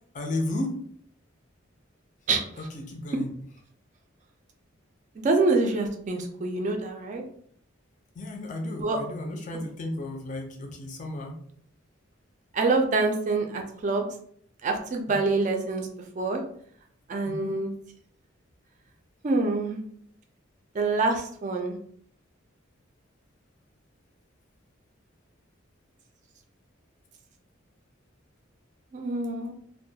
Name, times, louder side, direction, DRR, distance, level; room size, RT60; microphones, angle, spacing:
voice 1, 0.1-0.8 2.6-3.4 8.2-11.4 15.1-15.3 17.3-17.5, left 1 dB, 40° left, 3 dB, 0.4 m, -33 dB
voice 2, 5.2-7.2 8.8-9.0 12.5-14.1 14.6-15.9 16.2-16.4 17.1-17.7 19.2-19.8 20.7-21.7 28.9-29.5, right 3 dB, 40° right, 3 dB, 0.3 m, -26 dB
2.2 x 2.1 x 2.7 m, 0.62 s
head